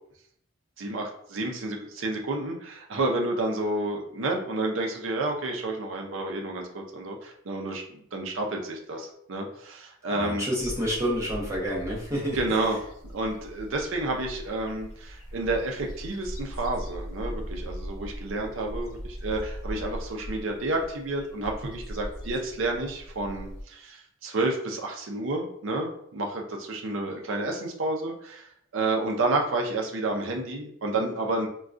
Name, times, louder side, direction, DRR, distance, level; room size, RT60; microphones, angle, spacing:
voice 1, 0.8-10.4 12.3-12.8 13.1-31.5, right 2 dB, 65° right, 1 dB, 0.5 m, -30 dB
voice 2, 10.1-12.6, equal, 15° right, -5 dB, 0.7 m, -29 dB
sound 1, 10.6-23.6, equal, 85° left, 0.8 m, -39 dB
3.6 x 2.3 x 2.4 m, 0.67 s
head